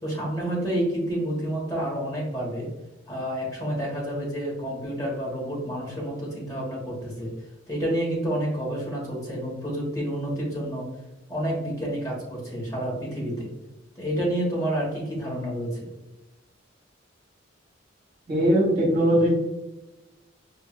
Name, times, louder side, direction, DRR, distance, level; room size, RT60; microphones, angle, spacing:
voice 1, 0.0-2.7 3.1-7.3 7.7-10.9 11.3-13.5 14.0-15.9, right 1 dB, 20° left, -4 dB, 1.4 m, -29 dB
voice 2, 18.3-19.3, equal, 50° right, -3 dB, 1.4 m, -20 dB
5.6 x 2.7 x 2.4 m, 1.0 s
head